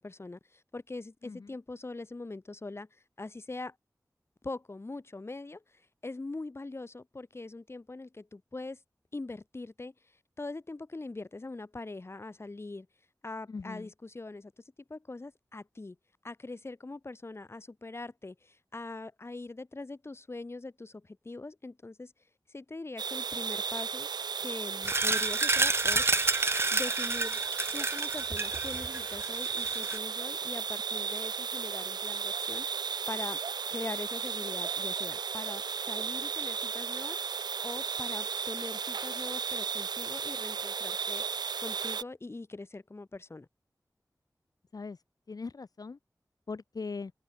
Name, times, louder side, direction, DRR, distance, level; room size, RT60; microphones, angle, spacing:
voice 1, 0.0-2.9 3.2-3.8 4.4-8.8 9.1-9.9 10.4-12.9 13.2-14.5 14.9-16.0 16.2-22.1 22.5-24.1 24.4-26.1 26.7-27.4 27.7-33.4 33.7-37.2 37.6-41.2 41.6-43.5, left 2 dB, 40° left, 1.0 m, -42 dB
voice 2, 13.5-13.9 44.7-45.0 45.3-46.0 46.5-47.1, left 4 dB, 60° left, 0.7 m, -40 dB
sound 1, 23.0-42.0, right 6 dB, 85° right, 0.3 m, -35 dB
sound 2, 24.8-30.0, right 3 dB, 35° right, 0.6 m, -29 dB
open air
wide cardioid pair, 65°, 7 cm